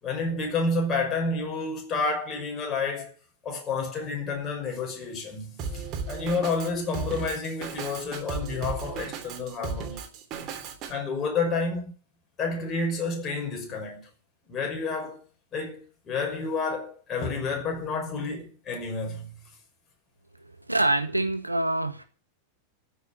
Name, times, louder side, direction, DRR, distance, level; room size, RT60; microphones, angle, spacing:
voice 1, 0.0-3.1 3.4-10.1 10.9-11.9 12.4-14.1 14.5-15.2 15.5-19.4, left 3 dB, 25° left, 5.7 m, -30 dB
Drum kit, 5.6-10.9, right 5 dB, 35° right, 3.2 m, -35 dB
voice 2, 20.7-22.0, right 2 dB, 85° right, 1.8 m, -25 dB
14.5 x 6.6 x 9.6 m
figure-of-eight pair, 90°, 0 cm